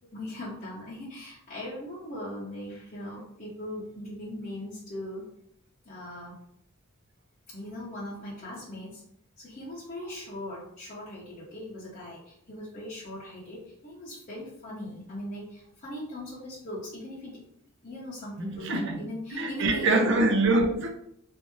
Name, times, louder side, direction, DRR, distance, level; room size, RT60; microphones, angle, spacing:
voice 1, 0.1-5.2 5.8-6.4 7.5-9.0 9.4-17.4 17.8-20.1, left 1 dB, 35° left, -9 dB, 0.9 m, -39 dB
voice 2, 18.4-19.0 19.3-20.9, right 2 dB, 60° right, 2 dB, 0.7 m, -24 dB
3.4 x 2.7 x 3.0 m, 0.70 s
head